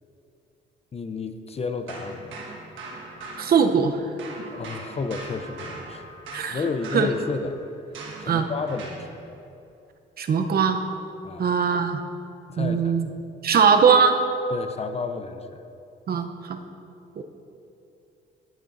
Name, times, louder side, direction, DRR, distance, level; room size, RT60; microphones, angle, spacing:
voice 1, 0.9-2.4 4.5-6.2 6.5-7.6 8.2-9.3 11.2-11.5 12.5-13.0 14.5-15.6, left 4 dB, 30° left, 9 dB, 0.5 m, -31 dB
sound 1, 1.9-9.1, right 3 dB, 75° right, 1.4 m, -41 dB
voice 2, 3.4-4.0 6.3-6.6 6.9-7.1 8.3-8.5 10.2-10.8 11.4-12.0 12.6-13.1 13.4-14.2 16.1-16.6 17.2-17.3, right 6 dB, 50° right, 7 dB, 0.7 m, -20 dB
16.5 x 6.7 x 2.6 m, 2.7 s
cardioid pair, 90°, 20 cm